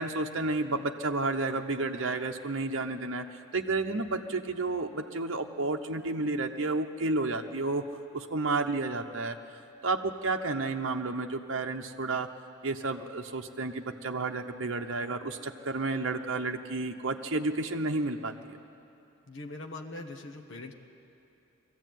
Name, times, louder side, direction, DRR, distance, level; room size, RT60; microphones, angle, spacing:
voice 1, 0.0-3.2 3.5-9.4 9.8-12.3 12.6-18.6, right 3 dB, 60° right, 3 dB, 0.8 m, -31 dB
voice 2, 19.3-20.7, left 2 dB, 60° left, 3 dB, 1.2 m, -41 dB
20.5 x 14.5 x 9.2 m, 2.7 s
head